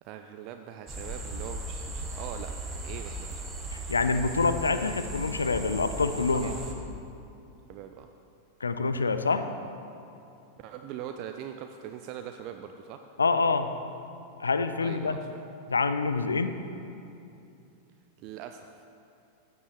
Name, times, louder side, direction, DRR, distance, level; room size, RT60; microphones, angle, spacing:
voice 1, 0.0-3.5 3.8-3.9 6.4-6.8 7.7-8.1 10.6-13.0 14.8-15.4 18.2-18.7, right 9 dB, 40° right, 6 dB, 0.4 m, -42 dB
sound 1, 0.9-6.7, right 1 dB, 15° right, 1.4 m, -37 dB
voice 2, 3.7-6.6 8.6-9.5 13.2-13.7 14.4-15.2 15.7-16.6, left 4 dB, 75° left, 10 dB, 0.5 m, -26 dB
15.0 x 9.3 x 3.3 m, 2.7 s
figure-of-eight pair, 90°, 0 cm